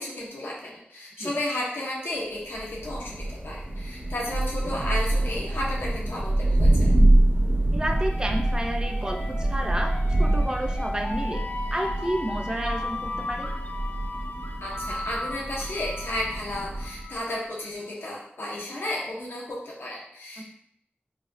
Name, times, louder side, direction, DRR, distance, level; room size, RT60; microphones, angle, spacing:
voice 1, 0.0-6.9 14.6-20.4, left 1 dB, 85° left, -4 dB, 0.8 m, -33 dB
Thunder, 2.5-17.1, right 1 dB, 60° right, 0.8 m, -25 dB
voice 2, 7.7-9.9 10.2-11.4 11.7-13.5 20.4-20.5, right 1 dB, 20° right, 2 dB, 0.5 m, -31 dB
sound 1, 7.9-17.6, left 2 dB, 45° left, 0.3 m, -37 dB
4.0 x 2.2 x 2.5 m, 0.71 s
wide cardioid pair, 55°, 4 cm